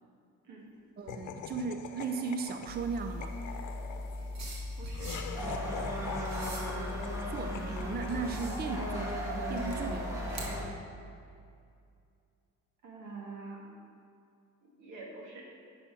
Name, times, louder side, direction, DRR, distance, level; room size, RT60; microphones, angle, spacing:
voice 1, 1.0-3.4 7.2-10.5, right 5 dB, 30° right, 7 dB, 0.6 m, -37 dB
Laughter, 1.1-9.4, left 7 dB, 80° left, 0.8 m, -44 dB
sound 1, 2.7-10.6, left 1 dB, 65° right, 2.0 m, -39 dB
voice 2, 4.8-5.2 12.8-13.8 14.6-15.5, right 3 dB, 85° right, -1 dB, 2.0 m, -46 dB
sound 2, 5.4-10.7, right 1 dB, 10° right, 1.9 m, -37 dB
9.9 x 6.9 x 4.8 m, 2.4 s
cardioid pair, 90°, 30 cm